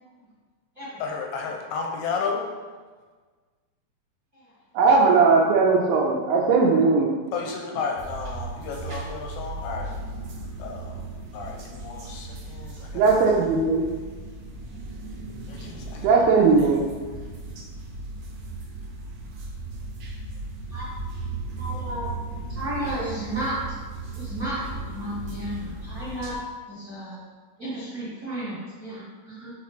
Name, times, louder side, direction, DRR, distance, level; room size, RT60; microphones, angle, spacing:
voice 1, 1.0-2.5 7.3-9.9 10.6-11.0 11.3-13.0 15.5-16.1, left 5 dB, 80° left, 1 dB, 2.2 m, -32 dB
voice 2, 4.7-7.1 12.9-13.9 16.0-16.8, right 4 dB, 85° right, -2 dB, 2.6 m, -18 dB
sound 1, 8.0-26.3, right 3 dB, 65° right, 2.4 m, -36 dB
voice 3, 21.6-22.1 22.5-23.6 24.1-26.4 26.7-27.2 27.6-29.5, right 1 dB, 50° right, -10 dB, 1.0 m, -33 dB
8.5 x 4.2 x 3.1 m, 1.4 s
omnidirectional pair, 4.7 m